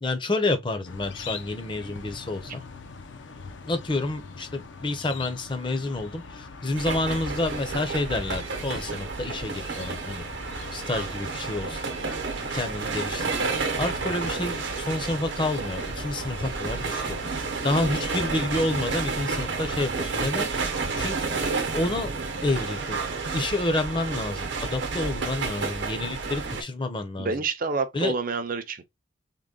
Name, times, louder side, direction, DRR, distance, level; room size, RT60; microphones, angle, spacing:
voice 1, 0.0-2.6 3.7-10.2 10.7-11.8 12.5-13.3 13.8-17.2 17.6-20.5 21.0-21.3 21.7-22.1 22.4-23.0 23.3-27.4 27.9-28.1, left 2 dB, 25° left, 0.6 m, -29 dB
sound 1, 0.8-19.1, left 4 dB, 70° left, 0.6 m, -43 dB
sound 2, 6.8-26.6, right 4 dB, 65° right, 0.8 m, -31 dB
voice 2, 27.2-28.8, right 4 dB, 45° right, 0.5 m, -28 dB
3.7 x 2.2 x 3.6 m
head